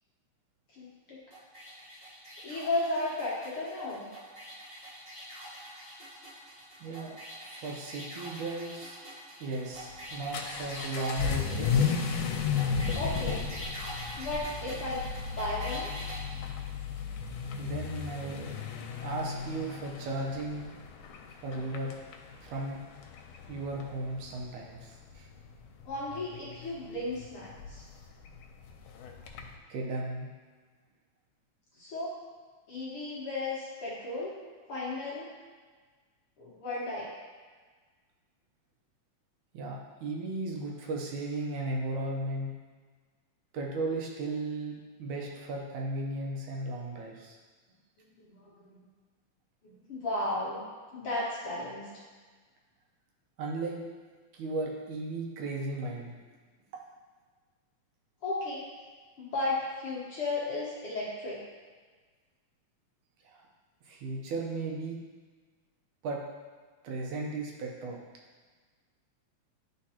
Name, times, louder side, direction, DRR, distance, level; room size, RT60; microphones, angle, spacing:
voice 1, 0.7-1.2 2.4-4.1 12.9-13.5 14.2-15.0 15.3-15.9 25.8-27.8 31.8-32.2 32.7-34.3 34.7-35.3 36.4-37.1 48.2-48.8 49.6-52.0 58.2-58.7 59.2-61.4, left 2 dB, 60° left, -7 dB, 1.7 m, -34 dB
sound 1, 1.3-16.2, equal, 25° right, 1.2 m, -44 dB
voice 2, 6.8-7.2 7.4-9.0 9.4-11.9 17.6-18.5 19.0-20.7 21.4-21.9 22.4-22.8 23.5-25.3 29.7-30.3 39.5-42.5 43.5-44.7 45.0-47.4 53.4-53.8 54.3-56.1 63.2-63.5 63.8-65.0 66.0-66.2 66.8-68.0, right 2 dB, 75° right, -1 dB, 2.3 m, -35 dB
Vehicle / Accelerating revving vroom, 9.7-29.5, left 6 dB, 90° left, 2.1 m, -35 dB
10.5 x 4.4 x 2.9 m, 1.4 s
omnidirectional pair, 3.6 m